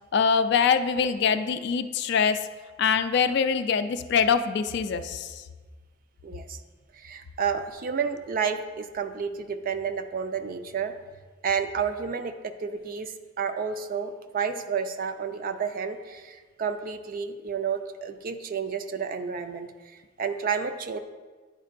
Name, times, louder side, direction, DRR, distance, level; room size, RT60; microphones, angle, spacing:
voice 1, 0.1-2.4 2.8-5.4, left 6 dB, 55° left, 10 dB, 0.3 m, -24 dB
voice 2, 6.2-6.6 7.0-10.9 11.4-19.7 20.2-21.0, right 6 dB, 45° right, 9 dB, 0.4 m, -30 dB
10.0 x 4.4 x 2.5 m, 1.4 s
head